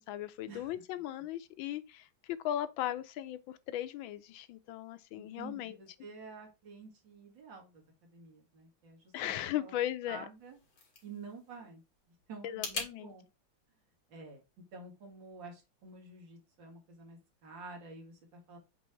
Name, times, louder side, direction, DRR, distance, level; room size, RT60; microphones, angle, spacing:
voice 1, 0.0-2.1 2.4-5.8 9.1-10.2 12.4-13.1, left 12 dB, 80° left, 1.4 m, -37 dB
voice 2, 5.1-9.7 10.1-10.6 11.0-11.8 12.3-13.3 14.1-14.4 14.7-18.6, right 4 dB, 70° right, 2.6 m, -50 dB
sound 1, 10.3-12.9, left 4 dB, 60° left, 2.5 m, -43 dB
7.2 x 3.4 x 4.5 m
omnidirectional pair, 2.1 m